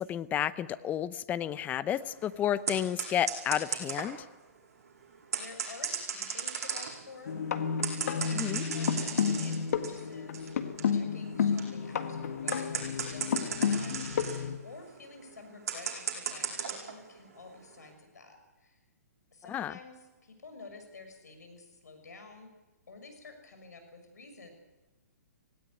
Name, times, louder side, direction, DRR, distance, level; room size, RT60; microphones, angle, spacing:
voice 1, 0.0-4.2 8.3-8.6 19.5-19.7, left 10 dB, 20° left, 15 dB, 0.7 m, -31 dB
sound 1, 1.9-4.2 5.1-17.0 17.4-17.9, right 6 dB, 60° right, 7.9 m, -37 dB
voice 2, 5.4-7.4 7.6-7.8 8.1-10.5 10.9-18.8 19.3-22.5 22.9-24.5, left 3 dB, 80° left, 6 dB, 6.3 m, -51 dB
sound 2, 7.3-14.6, left 7 dB, 65° left, 1.8 m, -31 dB
17.5 x 17.5 x 9.5 m, 1.1 s
hypercardioid pair, 135°, 9 cm